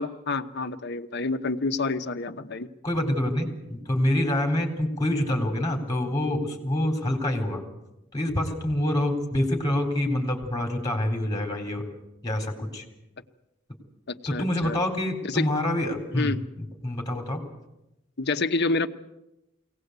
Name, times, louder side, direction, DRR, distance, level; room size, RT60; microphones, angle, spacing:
voice 1, 0.0-2.7 14.3-14.8 15.3-15.5 16.2-16.4 18.2-18.9, left 3 dB, 60° left, 8 dB, 1.0 m, -28 dB
voice 2, 2.8-7.6 8.1-11.8 12.2-12.8 14.3-17.4, left 1 dB, 20° left, 4 dB, 4.0 m, -26 dB
23.0 x 18.0 x 8.1 m, 0.91 s
head